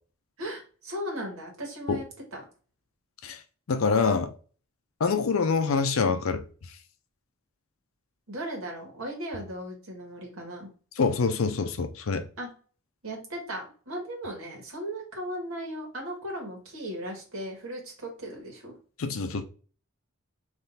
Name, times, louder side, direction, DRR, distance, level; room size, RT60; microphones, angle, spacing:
voice 1, 0.4-2.1 2.3-2.4 8.3-10.7 12.4-12.5 13.0-18.7, equal, 85° right, 1.9 m, -37 dB
voice 2, 3.7-4.4 5.0-6.8 11.0-12.3 19.0-19.4, left 4 dB, 75° left, 0.5 m, -26 dB
3.7 x 3.2 x 4.1 m
head